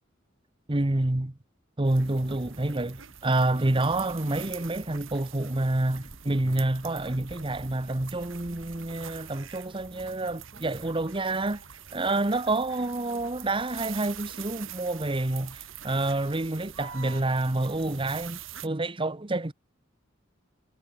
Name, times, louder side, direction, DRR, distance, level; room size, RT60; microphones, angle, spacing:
voice 1, 0.7-1.3 1.8-11.6 11.9-19.5, right 2 dB, 25° right, 1.0 m, -28 dB
sound 1, 1.8-18.7, right 8 dB, 75° right, 2.8 m, -44 dB
head